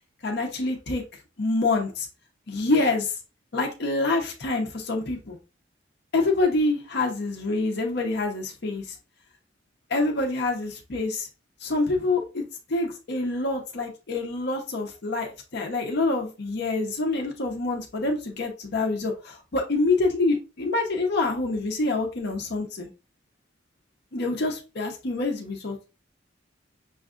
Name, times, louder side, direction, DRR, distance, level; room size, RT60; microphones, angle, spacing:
voice 1, 0.2-1.0 1.4-2.1 2.5-3.1 3.5-5.4 6.1-9.0 9.9-11.3 11.6-22.9 24.1-25.8, left 2 dB, 60° left, 2 dB, 0.7 m, -26 dB
6.2 x 2.4 x 2.4 m, 0.31 s
head